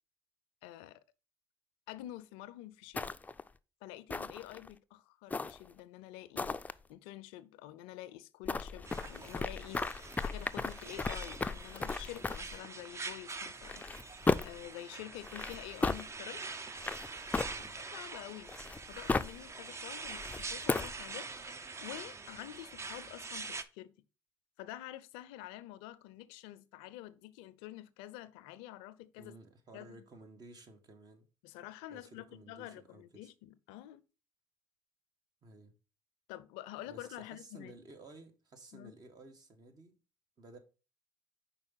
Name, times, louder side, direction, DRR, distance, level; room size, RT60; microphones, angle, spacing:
voice 1, 0.6-1.0 1.9-3.1 3.8-6.6 6.9-9.8 10.2-14.1 14.4-16.4 17.6-18.5 18.9-21.3 21.8-23.9 24.6-29.3 29.7-30.0 31.4-34.0 36.3-37.7 38.7-38.9, left 14 dB, 85° left, 0.5 m, -48 dB
sound 1, 2.9-3.5 4.1-4.7 5.3-5.8 6.4-6.7 8.4-12.6 13.6-14.7 15.2-16.0 16.8-17.9 18.5-19.4 20.1-21.0, left 3 dB, 15° left, 0.4 m, -35 dB
sound 2, 8.8-23.6, right 4 dB, 30° right, 0.7 m, -45 dB
voice 2, 17.5-17.8 29.2-31.3 31.9-33.3 35.4-35.7 36.9-39.9 40.4-40.6, right 2 dB, 45° right, 1.6 m, -54 dB
5.3 x 4.2 x 5.6 m
supercardioid pair, 70°, 9 cm